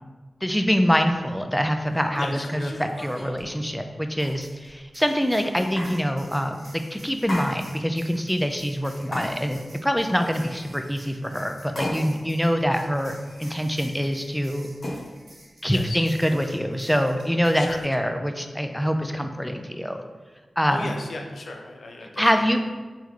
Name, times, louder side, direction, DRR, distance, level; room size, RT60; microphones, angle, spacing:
voice 1, 0.4-14.7 15.6-20.0 20.6-21.0 22.2-22.6, equal, 5° left, 6 dB, 0.4 m, -25 dB
sound 1, 1.0-1.1 1.8-3.4 4.2-4.8 5.8-5.9 7.2-8.0 9.1-9.7 10.1-11.2 11.8-12.3 12.7-13.9 14.8-15.0 16.1-16.5, left 1 dB, 55° left, 1.1 m, -37 dB
voice 2, 2.2-2.8 15.7-16.1 17.5-17.8 20.7-22.6, left 2 dB, 80° left, 2 dB, 0.5 m, -36 dB
sound 2, 3.3-3.4 4.2-17.8, right 1 dB, 70° right, 1.3 m, -50 dB
3.6 x 3.4 x 3.1 m, 1.3 s
cardioid pair, 50°, 0 cm